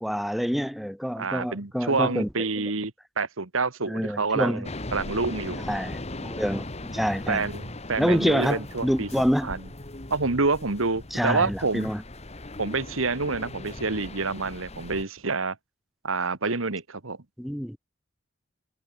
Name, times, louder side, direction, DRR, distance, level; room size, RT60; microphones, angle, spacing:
voice 1, 0.0-2.3 3.9-4.6 5.7-7.4 8.0-9.5 11.1-12.0 17.4-17.8, equal, ahead, 1.2 m, -27 dB
voice 2, 1.2-2.9 3.2-5.6 7.3-9.1 9.4-9.6 10.1-11.9 12.6-15.6 16.0-17.2, right 3 dB, 85° right, 1.7 m, -27 dB
sound 1, 4.6-15.0, left 2 dB, 35° left, 1.9 m, -39 dB
head